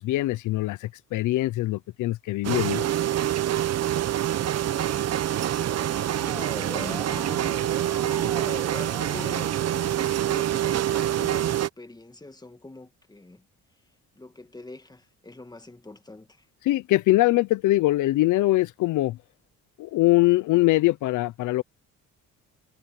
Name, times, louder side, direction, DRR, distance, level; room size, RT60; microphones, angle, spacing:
voice 1, 0.0-2.9 16.6-19.2 19.8-21.6, left 18 dB, 85° left, 0.7 m, -22 dB
sound 1, 2.4-11.7, right 12 dB, 55° right, 0.9 m, -26 dB
Motor vehicle (road) / Siren, 4.7-10.6, right 1 dB, 5° right, 1.4 m, -42 dB
voice 2, 5.5-13.4 14.2-16.5, left 2 dB, 15° left, 2.0 m, -44 dB
cardioid pair, 90°, 30 cm